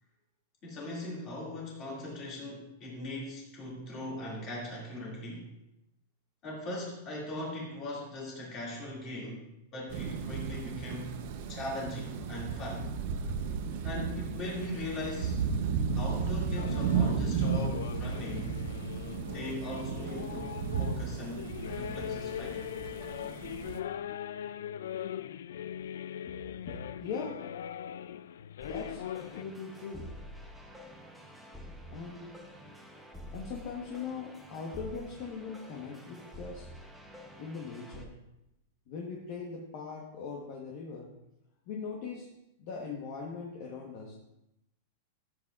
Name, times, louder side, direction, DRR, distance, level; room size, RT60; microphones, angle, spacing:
voice 1, 0.6-5.5 6.4-9.5 9.7-11.1 11.5-12.9 13.8-15.4 15.9-18.6 19.3-22.6, left 1 dB, 20° left, -3 dB, 2.2 m, -40 dB
sound 1, 9.9-23.8, right 6 dB, 40° right, 0.7 m, -34 dB
sound 2, 16.6-29.4, left 10 dB, 75° left, 0.3 m, -40 dB
voice 2, 26.7-27.5 28.7-30.2 31.9-32.8 33.3-36.7 37.4-38.2 38.9-41.2 41.7-44.1, left 5 dB, 35° left, -1 dB, 1.1 m, -41 dB
sound 3, 28.6-38.0, equal, ahead, 0.7 m, -48 dB
14.5 x 7.8 x 2.4 m, 0.87 s
supercardioid pair, 180°, 0 cm